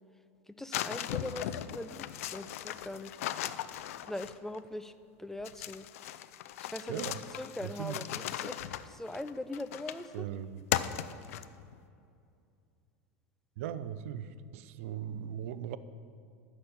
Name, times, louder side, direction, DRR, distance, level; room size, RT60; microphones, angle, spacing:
voice 1, 0.6-2.1 2.3-3.1 4.1-4.9 5.2-5.9 6.6-7.0 7.4-10.3, left 1 dB, 5° left, 11 dB, 0.6 m, -41 dB
sound 1, 0.7-4.6 5.4-10.2 10.7-11.7, left 12 dB, 75° left, 0.5 m, -38 dB
voice 2, 7.6-8.0 10.1-10.5 13.6-15.8, right 10 dB, 70° right, 14 dB, 0.7 m, -38 dB
12.5 x 6.2 x 8.7 m, 2.5 s
hypercardioid pair, 90°, 8 cm